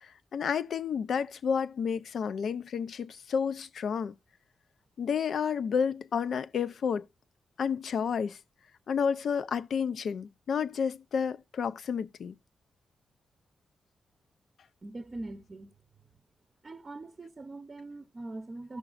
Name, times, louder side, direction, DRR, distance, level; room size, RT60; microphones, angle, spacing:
voice 1, 0.0-4.1 5.0-7.0 7.6-8.4 8.9-12.4, left 6 dB, 70° left, 0.5 m, -31 dB
voice 2, 14.8-15.7 16.6-18.8, right 2 dB, 35° right, 0.7 m, -42 dB
14.0 x 6.0 x 2.4 m
cardioid pair, 95°, 0 cm